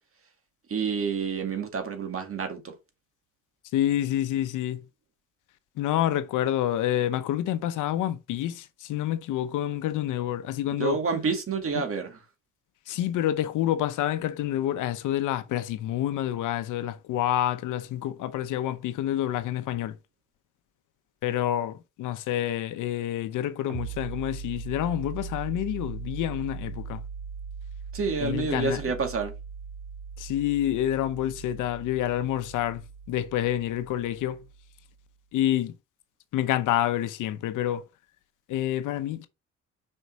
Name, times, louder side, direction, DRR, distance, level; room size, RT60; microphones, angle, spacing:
voice 1, 0.7-2.7 10.8-12.2 27.9-29.3, right 5 dB, 45° right, 1.8 m, -28 dB
voice 2, 3.7-4.8 5.8-11.0 11.7-11.8 12.9-20.0 21.2-27.0 28.2-28.8 30.2-32.8 33.1-34.4 35.3-35.7 36.3-37.8 38.5-39.3, left 12 dB, 90° left, 0.8 m, -28 dB
sound 1, 23.7-35.0, right 6 dB, 80° right, 1.8 m, -40 dB
5.4 x 4.6 x 4.1 m
cardioid pair, 90°, 30 cm